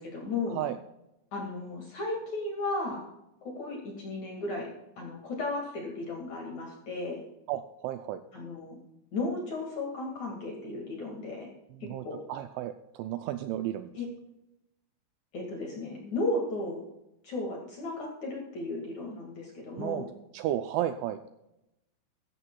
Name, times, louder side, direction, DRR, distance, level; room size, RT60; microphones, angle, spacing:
voice 1, 0.1-0.6 1.3-3.0 3.4-7.2 8.3-8.8 9.1-11.5 11.8-12.2 14.0-14.1 15.3-16.8 17.2-20.1, left 2 dB, 50° left, -1 dB, 2.4 m, -35 dB
voice 2, 7.5-8.2 11.7-13.9 19.8-20.0 20.3-21.2, right 12 dB, 85° right, 9 dB, 2.7 m, -33 dB
14.5 x 13.5 x 2.3 m, 0.89 s
omnidirectional pair, 5.8 m